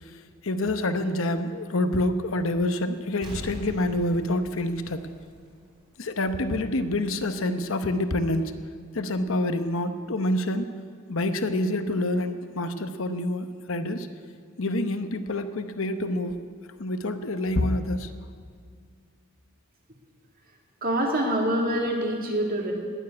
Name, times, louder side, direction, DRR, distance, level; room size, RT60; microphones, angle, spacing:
voice 1, 0.4-5.1 6.0-8.5 8.9-10.8 11.1-14.1 14.6-16.4 16.8-18.1, left 1 dB, 65° left, 9 dB, 0.9 m, -27 dB
Explosion, 3.2-5.8 6.2-6.3, equal, 20° right, 3.7 m, -41 dB
voice 2, 20.8-22.7, right 1 dB, 45° right, 0 dB, 2.5 m, -25 dB
19.0 x 7.4 x 9.6 m, 2.1 s
head